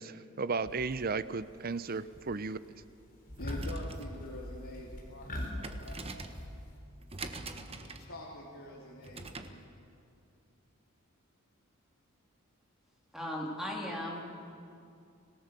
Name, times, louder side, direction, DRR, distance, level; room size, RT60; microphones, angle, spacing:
voice 1, 0.0-2.6, right 4 dB, 45° right, 15 dB, 0.6 m, -34 dB
sound 1, 0.6-1.3 1.7-2.3 2.6-2.9 3.3-6.8, equal, 40° left, 4.0 m, -42 dB
sound 2, 3.3-9.6, right 3 dB, 25° right, 1.2 m, -46 dB
voice 2, 3.4-6.4 7.7-9.5, left 1 dB, 70° left, -5 dB, 3.1 m, -46 dB
voice 3, 13.1-14.2, left 1 dB, ahead, -2 dB, 3.4 m, -37 dB
26.0 x 18.0 x 6.8 m, 2.4 s
head